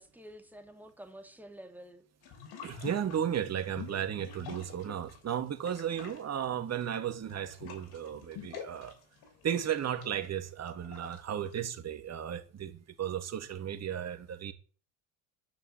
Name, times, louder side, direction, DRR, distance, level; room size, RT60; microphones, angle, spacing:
voice 1, 0.0-2.0, right 1 dB, 5° right, 3.3 m, -49 dB
sound 1, 2.2-5.3 5.6-11.6, left 7 dB, 60° left, 7.1 m, -47 dB
voice 2, 2.6-8.9 9.4-14.5, right 9 dB, 40° right, 2.5 m, -34 dB
11.0 x 9.1 x 9.0 m
supercardioid pair, 100°, 42 cm